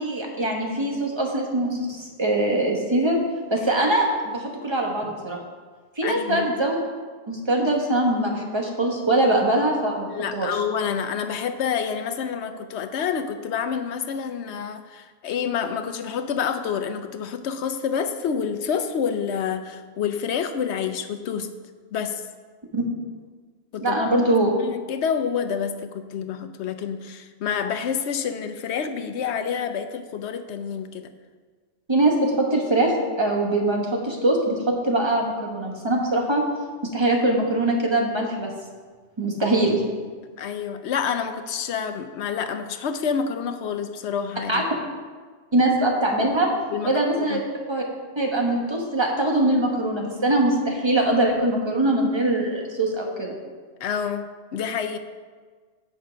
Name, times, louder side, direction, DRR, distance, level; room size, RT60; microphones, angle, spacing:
voice 1, 0.0-3.2 3.5-5.4 6.0-6.8 7.3-10.6 22.7-22.8 23.8-24.5 31.9-36.4 36.9-38.5 39.2-39.8 44.5-44.6 45.5-46.5 46.8-47.4 47.7-47.8 48.2-53.3, right 1 dB, 25° right, 0 dB, 1.2 m, -22 dB
voice 2, 6.0-6.4 10.1-21.5 21.9-22.2 23.7-24.0 24.6-31.1 40.4-44.6 46.7-47.4 53.8-55.0, left 7 dB, 80° left, 9 dB, 0.9 m, -28 dB
8.7 x 5.4 x 5.0 m, 1.5 s
omnidirectional pair, 1.1 m